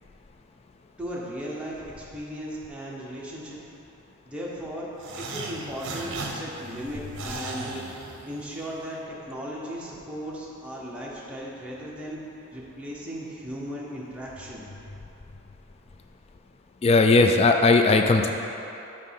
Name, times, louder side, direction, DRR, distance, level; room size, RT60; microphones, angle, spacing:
voice 1, 1.0-3.6 4.2-4.9 5.2-8.0 8.3-12.2 12.5-14.7, equal, 5° right, -6 dB, 1.0 m, -36 dB
sound 1, 5.0-8.7, right 3 dB, 60° right, 0.7 m, -37 dB
voice 2, 16.8-18.3, left 3 dB, 30° left, 5 dB, 0.3 m, -18 dB
8.8 x 3.2 x 5.7 m, 3.0 s
head